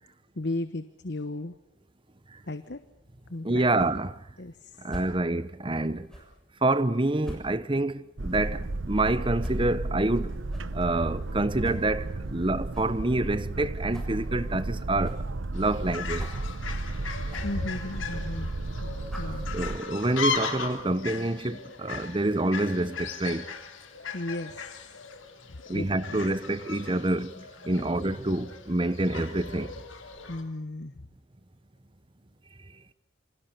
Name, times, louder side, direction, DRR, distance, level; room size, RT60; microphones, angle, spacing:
voice 1, 0.4-1.5 2.5-2.8 3.3-3.9 4.4-4.9 17.4-18.5 19.2-19.5 24.1-24.9 25.5-26.2 27.7-27.9 30.3-31.1, left 2 dB, 55° left, 1.1 m, -35 dB
sound 1, 2.6-20.6, equal, 5° left, 6.9 m, -48 dB
voice 2, 3.4-4.2 4.8-6.1 6.6-10.3 10.7-15.2 15.5-16.3 19.5-23.5 25.7-29.7, right 2 dB, 25° right, 1.0 m, -27 dB
Boat Water vehicle, 8.2-19.8, right 2 dB, 75° right, 1.0 m, -33 dB
Fowl, 15.5-30.4, left 5 dB, 75° left, 3.5 m, -38 dB
28.5 x 26.0 x 6.8 m
head